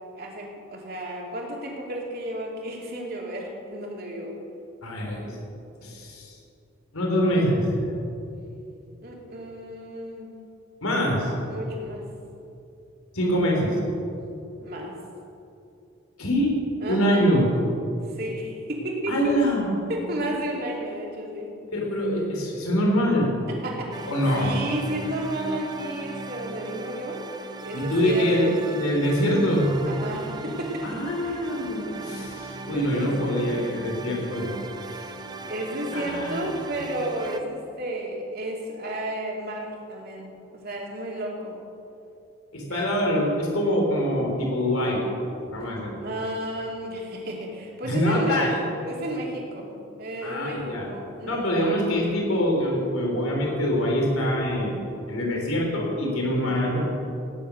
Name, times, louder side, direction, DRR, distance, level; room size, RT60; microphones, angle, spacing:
voice 1, 0.1-4.4 9.0-10.3 11.5-12.1 14.6-15.0 16.8-17.2 18.1-19.4 19.9-21.5 23.5-27.2 27.6-28.6 29.9-31.4 32.0-32.2 32.7-33.5 34.9-35.1 35.5-41.5 42.7-42.9 46.0-48.5 48.8-51.5 56.3-56.8, right 1 dB, 45° right, -1 dB, 2.9 m, -33 dB
voice 2, 4.8-5.4 5.8-6.4 6.9-7.9 10.8-11.3 13.1-13.8 16.2-16.6 16.9-17.5 19.1-20.2 21.7-23.4 24.1-24.6 27.7-29.8 30.8-34.6 35.9-36.8 42.5-45.0 45.5-46.0 47.8-48.6 50.2-50.9 51.2-54.8 55.1-56.8, equal, 85° left, -1 dB, 3.9 m, -24 dB
sound 1, 23.9-37.4, right 3 dB, 20° right, 0.7 m, -38 dB
18.5 x 10.0 x 6.4 m, 2.7 s
head